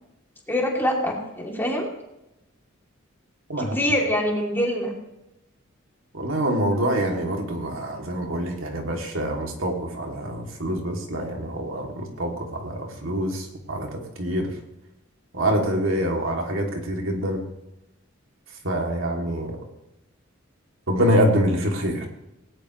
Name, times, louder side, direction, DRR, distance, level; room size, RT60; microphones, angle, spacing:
voice 1, 0.5-1.9 3.6-4.9, left 1 dB, 10° left, -1 dB, 3.2 m, -24 dB
voice 2, 6.1-14.5 15.3-17.4 18.6-19.6 20.9-22.1, equal, 70° right, 0 dB, 3.1 m, -25 dB
19.0 x 18.5 x 3.3 m, 0.91 s
head